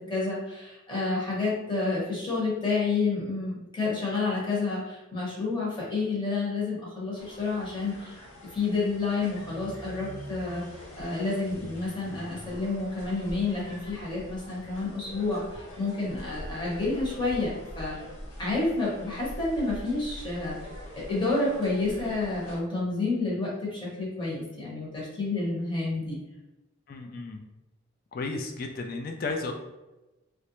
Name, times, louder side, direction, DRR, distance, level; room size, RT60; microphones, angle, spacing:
voice 1, 0.1-8.1 8.5-18.0 18.4-20.5 21.0-26.2, left 3 dB, 20° left, -6 dB, 1.0 m, -29 dB
sound 1, 7.2-22.6, equal, 85° left, 0.8 m, -44 dB
voice 2, 26.9-27.4 28.1-29.5, left 3 dB, 45° left, 3 dB, 0.3 m, -33 dB
3.1 x 2.5 x 2.9 m, 1.0 s
head